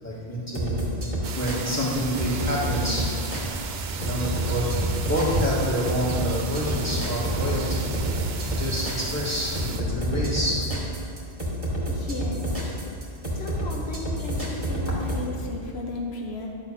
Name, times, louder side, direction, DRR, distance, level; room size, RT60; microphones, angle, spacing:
voice 1, 0.0-0.9 1.3-3.1 3.9-7.9 8.6-10.6, equal, 15° left, -8 dB, 2.5 m, -27 dB
sound 1, 0.5-15.2, right 1 dB, 35° right, 2.2 m, -29 dB
sound 2, 1.2-9.8, right 6 dB, 80° right, 0.9 m, -37 dB
sound 3, 3.4-10.7, right 2 dB, 5° right, 0.6 m, -36 dB
voice 2, 11.9-12.7 13.2-16.5, left 2 dB, 80° left, 0 dB, 1.2 m, -35 dB
11.0 x 4.1 x 7.3 m, 2.3 s
omnidirectional pair, 1.1 m